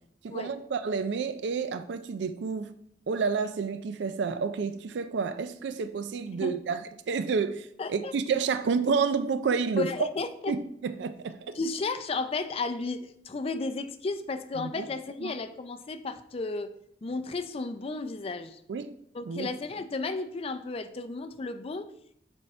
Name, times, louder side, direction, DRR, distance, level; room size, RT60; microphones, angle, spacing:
voice 1, 0.2-2.7 3.1-10.1 10.5-11.6 14.6-14.9 15.2-15.3 18.7-19.0 19.3-19.5, right 5 dB, 75° right, 0.4 m, -30 dB
voice 2, 7.8-8.1 9.8-10.6 11.6-16.7 17.0-18.6 19.1-21.9, left 3 dB, 35° left, 0.4 m, -33 dB
6.9 x 3.6 x 4.2 m
head